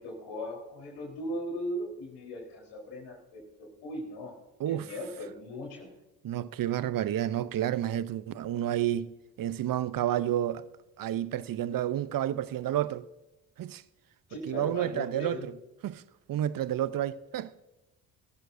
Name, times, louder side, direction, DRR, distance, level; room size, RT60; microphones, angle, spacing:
voice 1, 0.0-4.3 4.7-5.9 14.3-15.4, left 1 dB, 80° left, 4.1 m, -38 dB
voice 2, 6.2-10.7 11.0-13.1 13.6-13.8 14.5-15.5 15.8-16.0 16.3-17.5, right 11 dB, 55° right, 0.7 m, -30 dB
18.0 x 14.0 x 2.7 m
hypercardioid pair, 50°, 40 cm